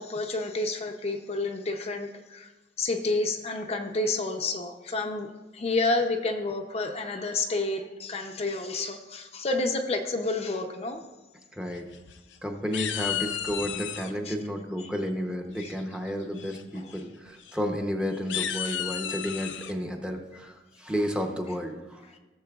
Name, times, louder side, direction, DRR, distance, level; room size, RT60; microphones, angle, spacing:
voice 1, 0.0-2.5 2.8-11.0 14.3-14.4 15.6-15.7 16.8-16.9, left 2 dB, 35° left, 4 dB, 0.5 m, -30 dB
voice 2, 11.5-11.9 12.4-22.0, equal, 5° right, 3 dB, 0.7 m, -32 dB
sound 1, 11.8-12.4 12.7-14.1 15.6-16.0 16.4-16.6 16.9-17.0 17.4-17.5 18.1-19.7, left 9 dB, 90° left, 0.6 m, -33 dB
16.0 x 7.3 x 2.3 m, 1.2 s
head